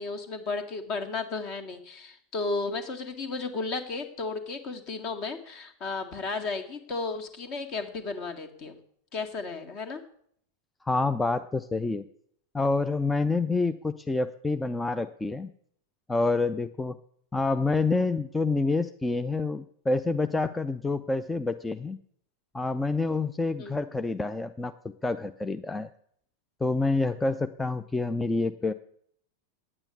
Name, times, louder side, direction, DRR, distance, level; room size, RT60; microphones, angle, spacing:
voice 1, 0.0-8.8 9.1-10.0 23.6-23.8, left 3 dB, 40° left, 7 dB, 1.8 m, -34 dB
voice 2, 10.8-12.1 12.5-15.5 16.1-16.9 17.3-22.0 22.5-24.7 25.0-25.9 26.6-28.7, left 3 dB, 10° left, 10 dB, 0.5 m, -27 dB
9.7 x 8.9 x 8.2 m, 0.65 s
figure-of-eight pair, 90°, 0 cm